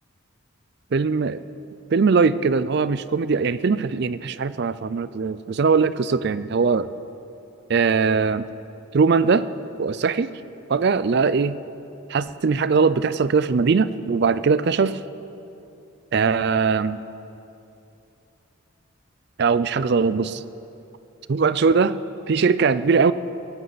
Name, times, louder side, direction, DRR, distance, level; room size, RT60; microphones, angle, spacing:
voice 1, 0.9-1.4 1.9-6.9 7.7-8.5 8.9-9.5 9.8-10.3 10.7-11.6 12.1-15.0 16.1-17.0 19.4-20.4 21.3-22.0 22.3-23.1, right 5 dB, 50° right, 15 dB, 0.4 m, -20 dB
17.0 x 16.0 x 4.1 m, 2.9 s
head